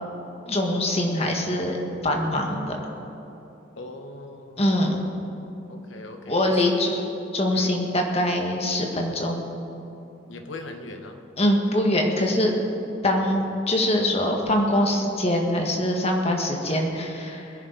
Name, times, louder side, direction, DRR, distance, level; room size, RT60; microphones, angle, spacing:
voice 1, 0.5-1.8 2.0-2.8 4.6-5.0 6.3-7.0 7.3-9.4 11.4-12.5 13.0-17.5, left 1 dB, 30° left, 1 dB, 1.7 m, -23 dB
voice 2, 3.7-5.2 5.7-6.8 7.5-7.7 10.3-11.2, left 2 dB, 80° left, 4 dB, 1.3 m, -40 dB
21.5 x 10.5 x 4.1 m, 3.0 s
head